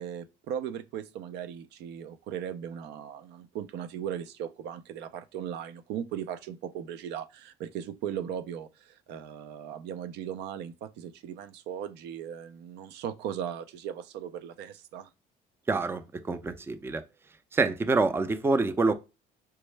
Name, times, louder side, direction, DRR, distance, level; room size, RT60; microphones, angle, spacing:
voice 1, 0.0-15.1, right 9 dB, 80° right, 0.4 m, -38 dB
voice 2, 15.7-17.0 17.5-18.9, right 3 dB, 15° right, 0.4 m, -26 dB
4.4 x 2.1 x 3.2 m
cardioid pair, 110°, 17 cm